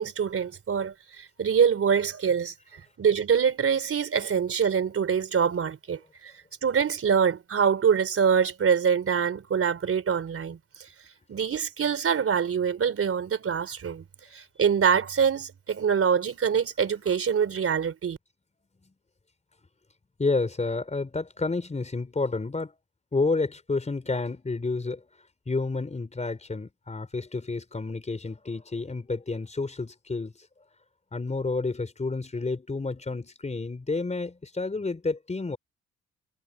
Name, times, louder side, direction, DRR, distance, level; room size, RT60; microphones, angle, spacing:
voice 1, 0.0-2.5 3.0-6.3 6.6-10.9 11.3-14.0 14.3-18.2, right 7 dB, 50° right, 3.9 m, -25 dB
voice 2, 20.2-22.7 23.1-25.0 25.5-30.3 31.1-35.6, left 3 dB, 25° left, 3.9 m, -30 dB
cardioid pair, 90°, 30 cm